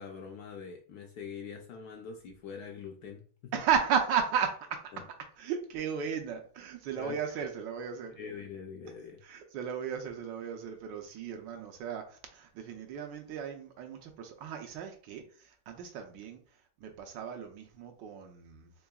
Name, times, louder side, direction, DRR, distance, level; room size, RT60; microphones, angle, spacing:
voice 1, 0.0-3.2 3.5-3.6 4.9-5.0 7.0-7.2 8.2-9.2, left 6 dB, 70° left, 2 dB, 0.9 m, -43 dB
voice 2, 3.5-5.0 5.4-8.2 9.2-18.7, right 7 dB, 75° right, 4 dB, 1.3 m, -35 dB
3.8 x 3.4 x 2.3 m, 0.43 s
omnidirectional pair, 2.1 m